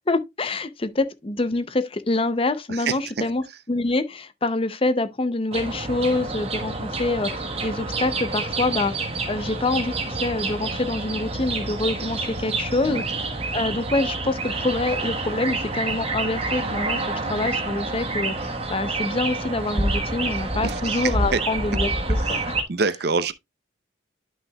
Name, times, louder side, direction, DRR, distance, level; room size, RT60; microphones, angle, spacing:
voice 1, 0.1-13.0 13.5-17.0 17.3-22.5, left 2 dB, 30° left, 0.6 m, -26 dB
voice 2, 2.7-3.3 12.8-13.1 20.6-21.4 22.2-22.4 22.7-23.3, right 4 dB, 55° right, 0.6 m, -26 dB
sound 1, 5.5-22.6, right 2 dB, 30° right, 1.3 m, -28 dB
11.5 x 5.6 x 2.3 m
head